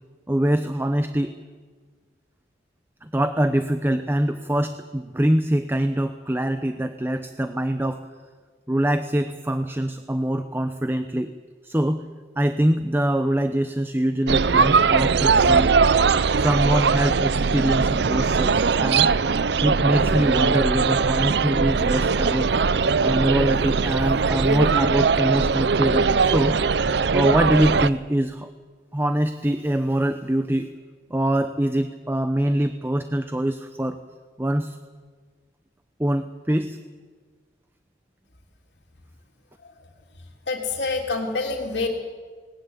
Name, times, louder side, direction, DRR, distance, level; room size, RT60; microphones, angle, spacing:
voice 1, 0.3-1.3 3.0-8.0 8.7-11.3 11.6-12.0 12.4-15.7 16.3-19.1 19.6-22.5 23.0-26.7 27.1-28.5 28.9-30.7 31.1-34.0 34.4-34.8 36.0-36.8, right 1 dB, 10° right, 9 dB, 0.7 m, -24 dB
sound 1, 14.3-27.9, right 5 dB, 65° right, 0.6 m, -20 dB
voice 2, 40.5-41.9, left 3 dB, 75° left, 1 dB, 3.3 m, -27 dB
19.5 x 19.0 x 9.7 m, 1.5 s
head